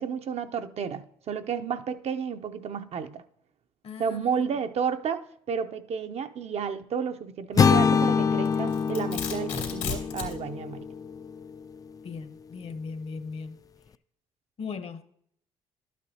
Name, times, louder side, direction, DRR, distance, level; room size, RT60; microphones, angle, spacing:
voice 1, 0.0-3.2 4.0-10.9, right 6 dB, 55° right, 0.6 m, -32 dB
voice 2, 3.8-4.4 12.0-13.6 14.6-15.0, left 4 dB, 50° left, 0.9 m, -38 dB
sound 1, 7.6-11.6, left 6 dB, 30° left, 0.3 m, -25 dB
Domestic sounds home sounds, 8.4-10.4, left 6 dB, 90° left, 2.5 m, -34 dB
12.0 x 8.3 x 2.8 m
supercardioid pair, 75°, 13 cm